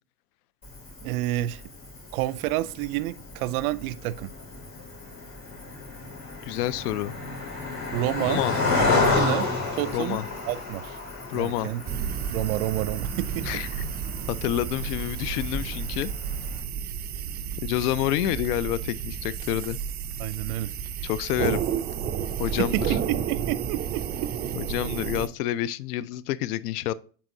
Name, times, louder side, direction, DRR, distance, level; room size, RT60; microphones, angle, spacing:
Cricket, 0.6-16.6, left 3 dB, 35° left, 3.2 m, -32 dB
voice 1, 1.0-1.6 2.1-4.3 7.9-8.4 8.7-9.5 9.7-10.2 10.5-11.0 11.3-11.8 12.3-13.5 20.2-20.7 22.7-24.3, right 15 dB, 70° right, 0.6 m, -29 dB
voice 2, 6.4-7.1 8.2-8.6 8.9-9.3 9.9-10.2 11.3-11.7 13.4-13.7 14.3-16.1 17.6-19.8 21.0-21.6 22.4-23.0 24.5-26.9, left 13 dB, 80° left, 0.6 m, -28 dB
sound 1, 11.9-25.3, right 8 dB, 25° right, 0.4 m, -31 dB
8.3 x 4.3 x 2.6 m
supercardioid pair, 105°, 46 cm